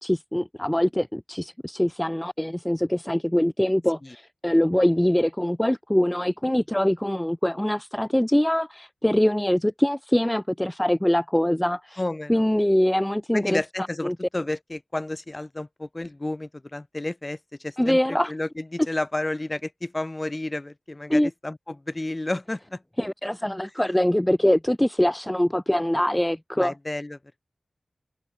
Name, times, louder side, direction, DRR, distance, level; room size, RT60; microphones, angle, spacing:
voice 1, 0.0-12.0 12.3-13.6 14.0-14.2 17.8-18.3 21.1-21.3 23.0-26.7, left 1 dB, 10° left, 0.4 m, -23 dB
voice 2, 12.0-12.4 13.3-22.8 26.6-27.2, left 2 dB, 30° left, 1.6 m, -31 dB
cardioid pair, 50°, 0 cm